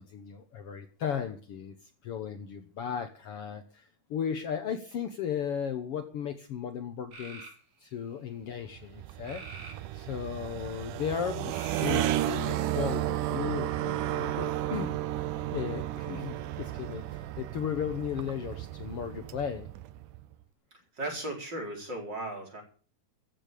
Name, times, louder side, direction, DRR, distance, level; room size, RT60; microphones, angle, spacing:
voice 1, 0.0-7.5 7.8-15.0 15.5-19.7, left 8 dB, 85° left, 8 dB, 1.3 m, -36 dB
sound 1, 7.1-7.6 9.2-10.3 11.5-12.3, right 3 dB, 55° right, 4.8 m, -46 dB
sound 2, 8.7-20.3, right 13 dB, 70° right, 2.2 m, -33 dB
voice 2, 20.9-22.6, right 1 dB, 30° right, 1 dB, 4.7 m, -36 dB
14.5 x 8.7 x 8.4 m, 0.40 s
omnidirectional pair, 4.3 m